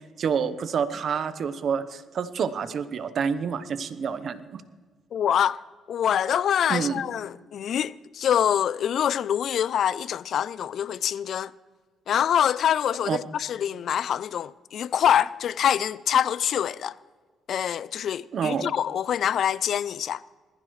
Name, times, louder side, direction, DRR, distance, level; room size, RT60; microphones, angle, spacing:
voice 1, 0.2-4.6 6.7-7.0 13.1-13.2 18.3-18.7, right 6 dB, 60° right, 0.9 m, -28 dB
voice 2, 5.1-5.6 5.9-11.5 12.1-16.9 17.5-20.2, left 9 dB, 65° left, 0.3 m, -25 dB
20.5 x 15.0 x 3.2 m
cardioid pair, 90°, 0 cm